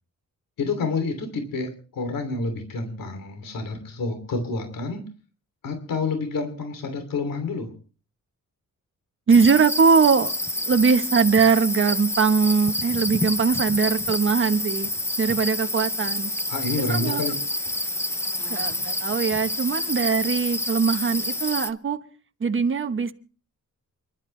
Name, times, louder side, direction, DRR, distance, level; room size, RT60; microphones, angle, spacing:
voice 1, 0.6-5.0 5.6-7.7 16.5-17.3, left 3 dB, 80° left, 3.1 m, -28 dB
sound 1, 9.3-21.7, left 1 dB, 10° left, 0.6 m, -28 dB
voice 2, 9.3-10.3 10.6-14.9 15.2-16.3 16.8-17.2 18.5-22.0 22.4-23.1, right 5 dB, 35° right, 1.2 m, -21 dB
29.0 x 12.0 x 3.3 m
wide cardioid pair, 175°, 33 cm